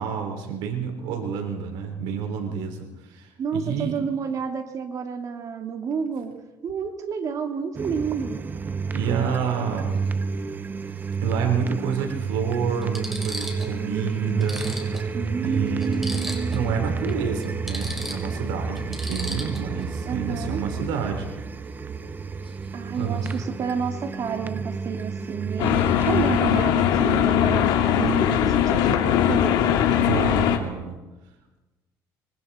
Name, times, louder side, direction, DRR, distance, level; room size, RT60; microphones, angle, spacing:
voice 1, 0.0-4.0 8.9-9.9 11.2-14.7 15.4-16.1 16.5-21.3 23.0-23.3 30.0-30.9, right 7 dB, 80° right, 3 dB, 4.1 m, -29 dB
voice 2, 3.4-6.4 6.6-8.4 15.1-16.6 20.1-20.6 22.7-29.8, right 6 dB, 45° right, 5 dB, 2.6 m, -30 dB
sound 1, 7.7-26.4, right 4 dB, 25° right, 1.0 m, -30 dB
sound 2, 10.1-10.2 11.5-11.6 12.3-12.4 12.8-13.8 14.1-14.2 14.4-16.7 17.0-17.1 17.4-19.8 22.4-22.7 22.9-23.4, equal, ahead, 5.5 m, -37 dB
sound 3, 25.6-30.6, left 10 dB, 75° left, 2.5 m, -20 dB
25.5 x 24.5 x 4.4 m, 1.1 s
cardioid pair, 110°, 8 cm